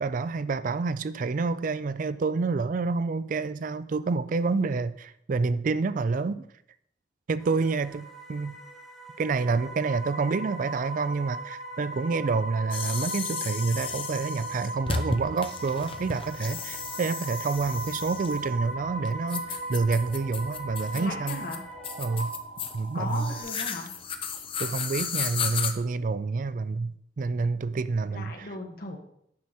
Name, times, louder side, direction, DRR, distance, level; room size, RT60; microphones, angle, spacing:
voice 1, 0.0-6.5 7.3-8.6 9.2-21.4 22.0-22.4 22.7-23.3 24.6-28.5, right 4 dB, 50° right, 0.4 m, -28 dB
sound 1, 7.4-22.2, right 3 dB, ahead, 1.1 m, -45 dB
sound 2, 9.5-23.4, right 1 dB, 65° right, 2.1 m, -39 dB
sound 3, 12.7-25.7, left 6 dB, 30° left, 0.7 m, -35 dB
voice 2, 20.9-21.6 22.9-23.9 28.1-29.0, left 2 dB, 55° left, 1.6 m, -37 dB
9.5 x 6.1 x 4.3 m
head